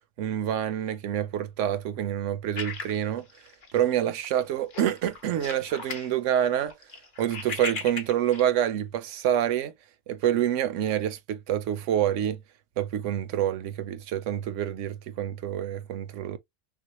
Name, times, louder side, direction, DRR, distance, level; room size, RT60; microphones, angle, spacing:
voice 1, 0.2-3.3 3.7-6.7 7.2-9.7 10.1-12.4 12.8-16.4, right 11 dB, 70° right, 0.9 m, -27 dB
sound 1, 2.5-3.9 4.2-4.4 4.7-6.1 6.4-8.4, left 4 dB, 40° left, 1.0 m, -37 dB
6.1 x 2.2 x 2.9 m
omnidirectional pair, 1.4 m